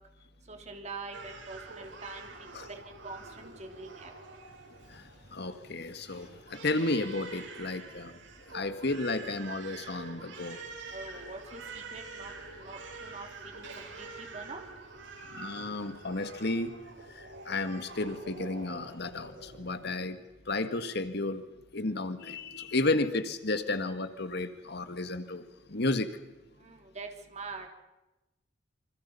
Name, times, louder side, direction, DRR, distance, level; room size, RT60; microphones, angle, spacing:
voice 1, 0.5-2.3 2.7-4.1 10.9-13.3 13.5-14.6 26.6-27.7, right 3 dB, 40° right, 3 dB, 3.6 m, -44 dB
Crying sobbing, 1.1-19.9, right 3 dB, 90° right, 7.2 m, -47 dB
voice 2, 5.3-8.1 8.5-10.6 15.3-16.7 17.1-20.2 20.5-21.4 21.7-25.4 25.7-26.1, left 2 dB, 60° left, 9 dB, 1.9 m, -32 dB
28.5 x 26.5 x 5.6 m, 1.0 s
head